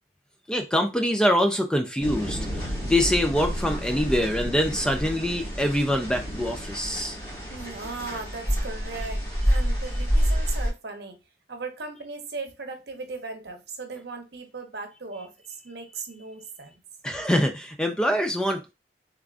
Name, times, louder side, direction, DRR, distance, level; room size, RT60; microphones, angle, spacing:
voice 1, 0.5-7.2 17.0-18.7, equal, 5° left, 0.4 m, -24 dB
sound 1, 2.0-10.7, equal, 25° left, 2.0 m, -28 dB
voice 2, 7.2-11.2 11.5-15.3 15.6-16.8, right 3 dB, 65° right, 0.8 m, -37 dB
3.5 x 3.5 x 2.4 m
head